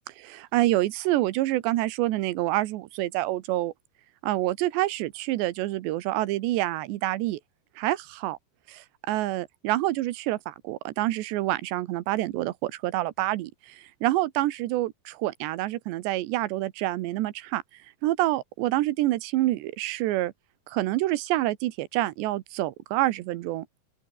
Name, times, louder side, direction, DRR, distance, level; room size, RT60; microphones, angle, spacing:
voice 1, 0.2-3.7 4.2-7.4 7.8-8.4 8.7-17.6 18.0-20.3 20.7-23.6, right 16 dB, 85° right, 3.2 m, -27 dB
open air
omnidirectional pair, 5.1 m